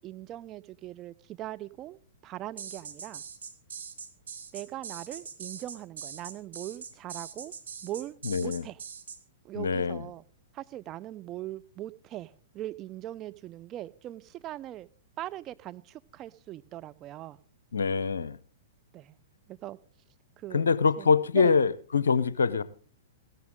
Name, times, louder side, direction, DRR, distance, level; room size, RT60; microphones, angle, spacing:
voice 1, 0.0-3.2 4.5-7.5 7.8-8.8 9.4-10.2 10.5-14.9 15.2-17.4 18.9-19.2 19.5-19.8 20.4-20.6 21.0-21.1 21.3-21.5, right 14 dB, 30° right, 0.6 m, -40 dB
sound 1, 2.6-9.2, right 6 dB, 75° right, 1.6 m, -42 dB
voice 2, 8.2-8.6 9.6-10.1 17.7-18.4 20.5-22.6, left 5 dB, 80° left, 0.7 m, -24 dB
15.5 x 13.0 x 3.8 m
hypercardioid pair, 115°, 0 cm